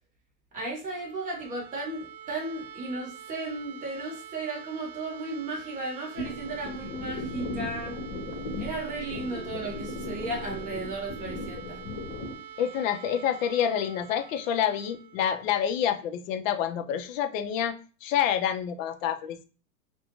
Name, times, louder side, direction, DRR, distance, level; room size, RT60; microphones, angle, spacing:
voice 1, 0.5-8.0 8.6-11.9, right 2 dB, 15° right, -1 dB, 0.9 m, -35 dB
sound 1, 0.7-16.5, right 9 dB, 50° right, 0.5 m, -46 dB
sound 2, 6.1-12.3, left 1 dB, 40° left, 0.9 m, -37 dB
voice 2, 12.6-17.7 18.0-19.4, left 9 dB, 55° left, 9 dB, 0.5 m, -28 dB
2.4 x 2.2 x 2.9 m, 0.36 s
hypercardioid pair, 125°, 47 cm